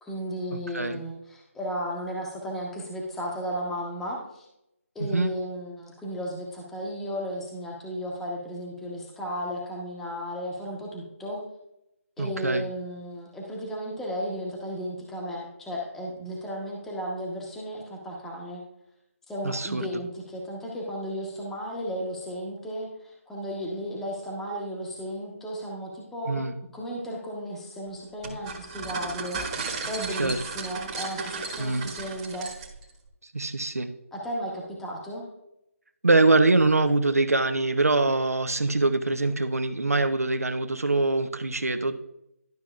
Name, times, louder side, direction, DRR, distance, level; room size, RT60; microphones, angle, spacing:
voice 1, 0.0-4.4 4.9-11.4 12.2-18.6 19.3-26.4 26.7-32.5 34.1-35.2, equal, 5° left, -3 dB, 0.9 m, -34 dB
voice 2, 0.5-1.0 5.1-5.3 12.2-12.6 19.4-19.9 26.3-26.6 30.2-30.4 31.6-31.9 33.3-33.9 36.0-41.9, right 2 dB, 85° right, 9 dB, 0.8 m, -24 dB
sound 1, 28.2-32.9, right 4 dB, 25° right, 1.3 m, -35 dB
12.0 x 6.1 x 2.4 m, 0.83 s
figure-of-eight pair, 155°, 8 cm